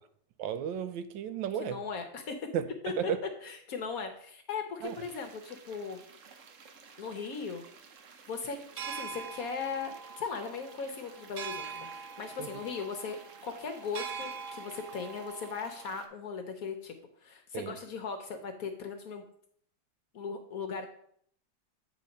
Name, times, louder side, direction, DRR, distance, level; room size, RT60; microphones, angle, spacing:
voice 1, 0.4-1.8 2.5-3.2 4.8-5.0 12.4-12.5 17.5-17.8, right 9 dB, 80° right, 11 dB, 1.3 m, -34 dB
voice 2, 1.6-2.4 2.8-2.9 3.4-6.0 7.0-7.6 8.3-8.6 8.9-13.2 13.4-16.9 17.2-19.3 20.1-20.9, left 5 dB, 65° left, 6 dB, 1.0 m, -38 dB
sound 1, 4.8-16.1, right 6 dB, 60° right, 0.9 m, -45 dB
8.3 x 4.0 x 5.2 m, 0.65 s
omnidirectional pair, 2.1 m